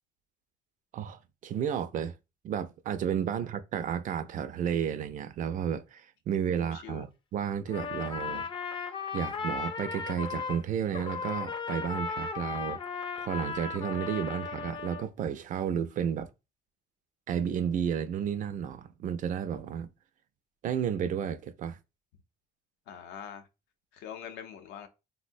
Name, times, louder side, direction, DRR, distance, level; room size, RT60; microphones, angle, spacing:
voice 1, 0.9-2.1 2.4-8.5 8.7-16.3 17.3-19.9 20.6-21.8, right 8 dB, 50° right, 0.4 m, -32 dB
voice 2, 6.6-7.1 22.9-23.5 23.9-24.9, left 8 dB, 85° left, 0.6 m, -43 dB
Trumpet, 7.7-10.6 10.9-15.1, left 5 dB, 30° left, 0.4 m, -36 dB
3.6 x 2.1 x 2.5 m
cardioid pair, 110°, 17 cm